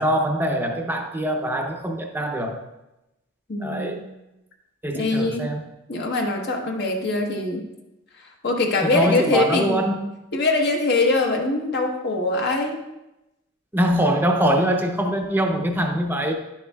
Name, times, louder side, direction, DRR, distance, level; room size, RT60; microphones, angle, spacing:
voice 1, 0.0-2.6 3.6-4.0 4.8-5.6 8.8-10.0 13.7-16.3, right 1 dB, 10° right, 3 dB, 0.7 m, -23 dB
voice 2, 3.5-4.1 4.9-5.5 5.9-7.7 8.2-9.8 10.3-12.8 15.1-15.2, left 2 dB, 55° left, 1 dB, 1.1 m, -23 dB
10.0 x 7.1 x 2.3 m, 0.93 s
head